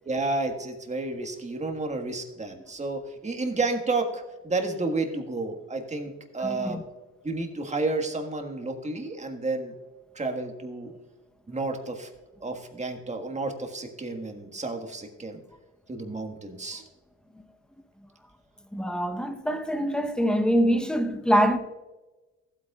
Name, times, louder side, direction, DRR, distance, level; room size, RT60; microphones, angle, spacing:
voice 1, 0.0-6.8 7.2-9.7 10.1-10.9 11.5-12.1 12.4-15.4 15.9-16.8, right 3 dB, 25° right, 1.6 m, -31 dB
voice 2, 6.4-6.8 17.4-17.5 18.7-21.6, equal, 5° left, 0.9 m, -24 dB
15.0 x 8.6 x 2.4 m
cardioid pair, 90°, 30 cm